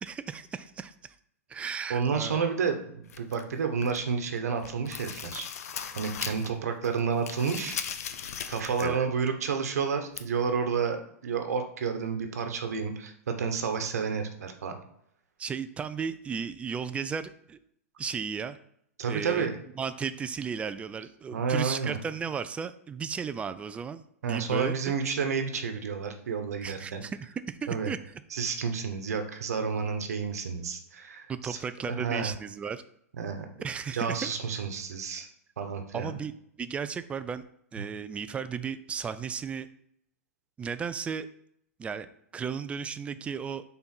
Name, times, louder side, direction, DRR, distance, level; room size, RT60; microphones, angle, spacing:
voice 1, 0.0-1.2 1.5-2.4 8.8-9.1 15.4-17.6 18.0-18.6 19.1-19.5 19.8-24.7 26.6-28.0 31.3-32.8 33.6-34.2 35.9-36.3 36.6-37.4 37.7-39.7 40.6-41.3 41.8-43.6, right 6 dB, 15° right, 12 dB, 0.4 m, -35 dB
voice 2, 1.9-5.5 5.9-7.8 8.5-11.0 11.2-14.8 19.0-19.6 21.3-22.0 24.2-27.0 27.7-27.9 28.3-31.6 31.9-32.3 33.1-33.5 33.9-35.3 35.6-36.2 37.8-37.9, right 6 dB, 80° right, 6 dB, 1.1 m, -30 dB
sound 1, 3.1-4.1 4.5-6.6 6.8-9.0 9.3-9.4 10.2-10.3, left 8 dB, 75° left, 0.6 m, -38 dB
5.7 x 4.0 x 4.4 m, 0.72 s
hypercardioid pair, 125°, 8 cm